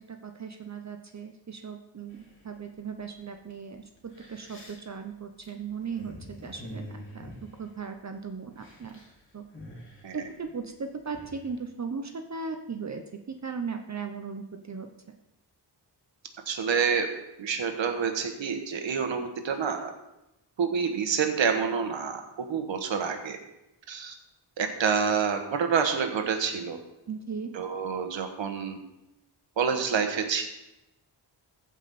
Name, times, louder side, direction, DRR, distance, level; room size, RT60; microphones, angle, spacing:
voice 1, 0.1-7.3 7.6-9.0 9.3-9.4 10.1-13.0 13.3-14.9 27.1-27.5, right 5 dB, 40° right, 6 dB, 0.8 m, -37 dB
sound 1, 2.1-2.7 3.5-3.6 4.0-8.2 8.5-9.1 9.4-11.5, equal, 25° left, 2.7 m, -46 dB
voice 2, 16.5-17.1 17.4-19.9 20.6-23.4 23.9-24.1 24.6-26.8 27.5-28.8 29.6-30.4, right 6 dB, 85° right, 5 dB, 1.4 m, -28 dB
15.0 x 5.5 x 4.2 m, 0.92 s
wide cardioid pair, 85°, 44 cm